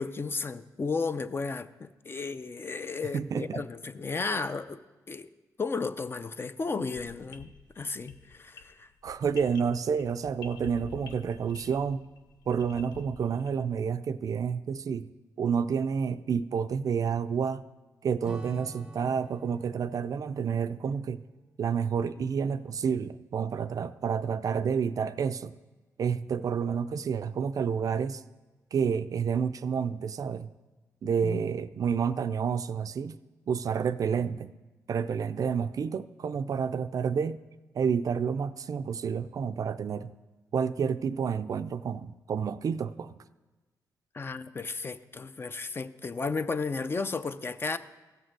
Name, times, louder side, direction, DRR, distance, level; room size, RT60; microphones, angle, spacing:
voice 1, 0.0-4.8 5.1-5.3 5.6-8.9 31.2-31.4 44.1-47.8, left 4 dB, 35° left, 12 dB, 0.5 m, -34 dB
voice 2, 3.1-3.7 9.0-12.1 12.5-15.1 15.4-17.6 18.0-21.2 21.6-25.6 26.0-28.2 28.7-30.5 31.0-33.2 33.5-34.5 34.9-37.4 37.7-40.1 40.5-43.2, right 6 dB, 55° right, 13 dB, 0.4 m, -29 dB
sound 1, 6.9-13.7, left 7 dB, 85° left, 0.7 m, -49 dB
Strum, 18.2-22.9, right 1 dB, 10° right, 0.7 m, -50 dB
15.5 x 6.6 x 4.6 m, 1.2 s
cardioid pair, 80°, 7 cm